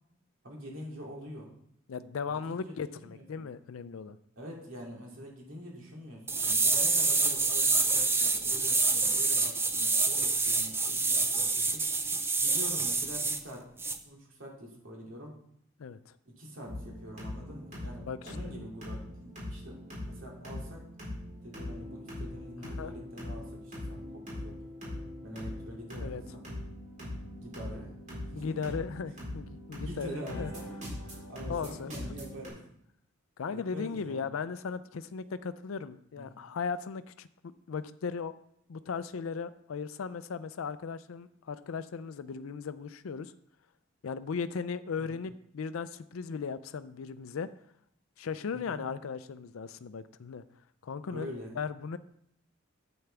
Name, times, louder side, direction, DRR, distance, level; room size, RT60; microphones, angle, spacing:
voice 1, 0.4-1.5 2.3-3.4 4.4-11.9 12.4-13.6 14.0-15.4 16.2-20.9 21.4-24.6 25.2-26.4 27.3-28.8 29.8-30.7 31.3-32.6 33.5-34.3 36.2-36.4 45.0-45.2 48.5-48.8 51.1-51.6, equal, 70° right, -2 dB, 2.6 m, -45 dB
voice 2, 1.9-4.2 15.8-16.1 18.1-18.4 22.6-22.9 26.0-26.2 28.4-30.5 31.1-31.2 31.5-31.9 33.4-37.3 37.7-38.3 38.7-43.3 44.0-47.5 48.2-50.4 50.8-51.3 51.6-52.0, left 5 dB, 85° left, 13 dB, 0.4 m, -37 dB
sound 1, 6.3-13.4 13.8-14.0, right 3 dB, 10° right, 0.5 m, -27 dB
sound 2, 16.6-32.5, left 1 dB, 40° right, 3.9 m, -41 dB
9.3 x 8.0 x 3.4 m, 0.71 s
head